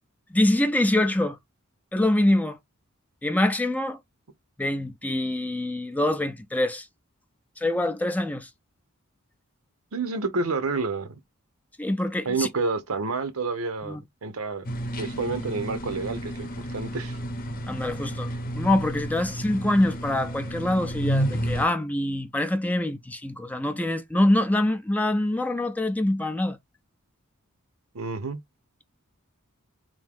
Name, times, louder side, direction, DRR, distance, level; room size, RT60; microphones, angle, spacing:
voice 1, 0.3-1.4 1.9-2.6 3.2-4.0 4.6-6.9 7.6-8.5 11.8-12.5 13.8-14.0 17.7-26.6, left 1 dB, 5° left, 0.4 m, -25 dB
voice 2, 9.9-11.1 12.2-14.7 14.9-17.1 27.9-28.4, right 4 dB, 85° right, 0.7 m, -29 dB
sound 1, 14.6-21.7, right 1 dB, 45° left, 0.7 m, -31 dB
3.6 x 2.7 x 3.5 m
head